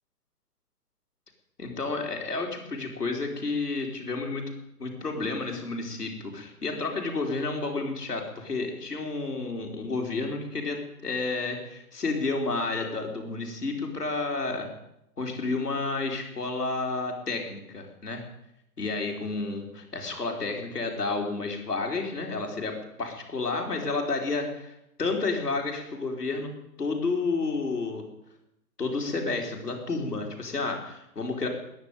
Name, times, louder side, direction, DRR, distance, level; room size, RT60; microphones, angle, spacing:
voice 1, 1.6-4.4 4.8-14.7 15.2-18.2 18.8-26.5 26.8-28.1 28.8-31.5, left 3 dB, 80° left, 1 dB, 3.9 m, -31 dB
20.5 x 7.0 x 9.0 m, 0.81 s
figure-of-eight pair, 125°, 47 cm